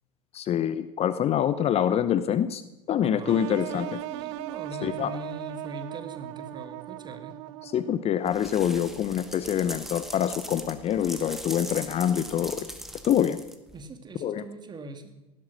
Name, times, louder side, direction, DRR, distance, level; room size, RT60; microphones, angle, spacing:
voice 1, 0.3-2.6 2.9-4.0 4.8-5.1 7.6-12.6 13.0-13.4 14.2-14.4, left 9 dB, 35° left, 14 dB, 0.8 m, -25 dB
voice 2, 3.0-7.4 13.7-15.1, right 2 dB, 25° right, 8 dB, 2.4 m, -41 dB
sound 1, 3.3-8.1, right 17 dB, 55° right, 0.6 m, -38 dB
sound 2, 8.3-13.8, right 1 dB, ahead, 2.0 m, -40 dB
17.5 x 12.0 x 6.3 m, 1.0 s
figure-of-eight pair, 75°, 18 cm